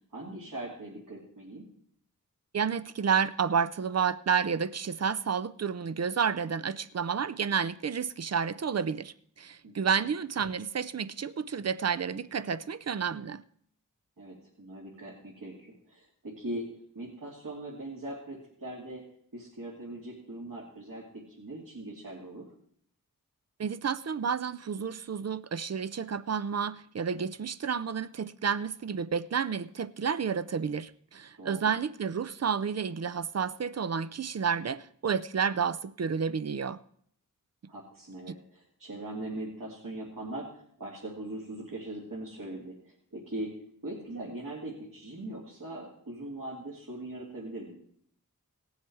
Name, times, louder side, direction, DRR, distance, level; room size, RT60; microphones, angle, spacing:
voice 1, 0.1-1.6 9.6-9.9 14.2-16.7 16.9-19.0 19.3-22.5 31.4-31.7 37.7-43.5 43.8-47.8, right 1 dB, 75° right, 3.0 m, -41 dB
voice 2, 2.5-13.4 23.6-36.8, right 6 dB, 50° right, 0.5 m, -30 dB
18.0 x 7.3 x 4.8 m
wide cardioid pair, 65°, 34 cm